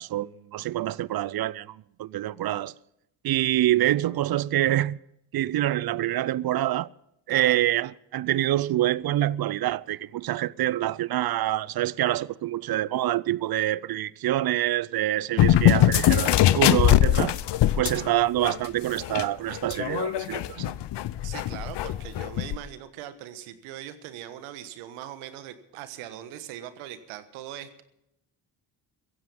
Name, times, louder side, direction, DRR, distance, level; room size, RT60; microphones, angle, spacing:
voice 1, 0.0-2.7 3.2-5.0 5.3-6.9 7.3-17.3 17.8-20.8, right 14 dB, 45° right, 0.6 m, -26 dB
voice 2, 7.3-7.6 21.2-27.8, right 11 dB, 80° right, 1.5 m, -40 dB
sound 1, 15.4-18.1 18.4-18.6 19.0-22.6, left 12 dB, 55° left, 0.9 m, -22 dB
16.0 x 15.5 x 5.4 m
hypercardioid pair, 50°, 50 cm